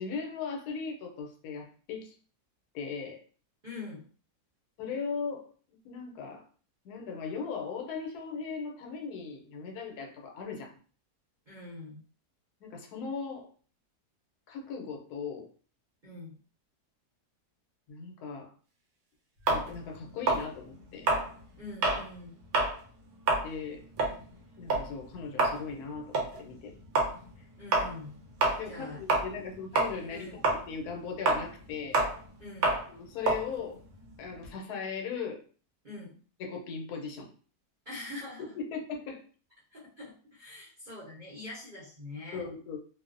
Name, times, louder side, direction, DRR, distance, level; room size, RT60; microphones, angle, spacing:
voice 1, 0.0-2.1 2.7-3.2 4.8-5.5 5.8-6.5 6.8-10.7 12.6-13.5 14.5-15.5 17.9-18.5 19.5-21.1 23.4-23.8 24.6-26.7 28.6-32.0 32.9-33.8 34.2-35.4 36.4-37.3 38.5-39.2 42.3-42.8, left 5 dB, 80° left, 2 dB, 1.1 m, -38 dB
voice 2, 3.6-4.0 11.5-12.0 16.0-16.3 21.6-22.5 27.6-28.2 28.7-29.2 30.1-30.4 32.4-32.8 35.8-36.1 37.8-38.5 39.7-42.4, left 2 dB, 45° right, -7 dB, 0.7 m, -44 dB
sound 1, 19.5-22.1 22.4-22.8 23.1-29.5 29.7-34.5, right 3 dB, 70° right, 1.1 m, -29 dB
2.7 x 2.0 x 2.4 m, 0.41 s
omnidirectional pair, 1.6 m